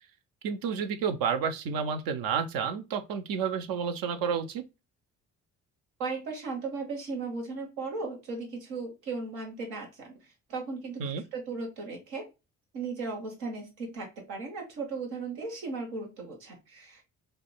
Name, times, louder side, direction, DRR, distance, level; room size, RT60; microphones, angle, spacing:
voice 1, 0.4-4.6 11.0-11.2, right 6 dB, 70° right, 0.6 m, -30 dB
voice 2, 6.0-11.0 11.3-12.3 12.7-17.0, right 4 dB, 85° right, 1.1 m, -36 dB
3.4 x 2.1 x 2.2 m
supercardioid pair, 55°, 36 cm